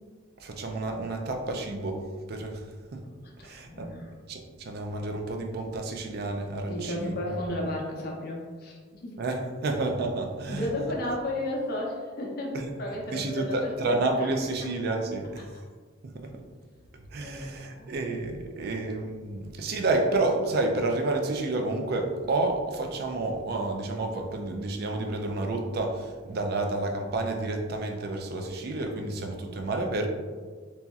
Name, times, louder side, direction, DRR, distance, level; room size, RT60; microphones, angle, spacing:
voice 1, 0.4-3.0 3.4-3.9 4.3-7.2 9.2-10.7 12.5-12.6 13.1-15.5 16.0-16.3 17.1-30.1, right 2 dB, 55° right, 3 dB, 0.4 m, -30 dB
voice 2, 3.4-4.2 6.7-9.1 10.5-14.3 17.2-17.9 18.6-18.8 19.2-19.4, left 1 dB, 50° left, -2 dB, 0.6 m, -34 dB
2.9 x 2.7 x 2.3 m, 1.5 s
head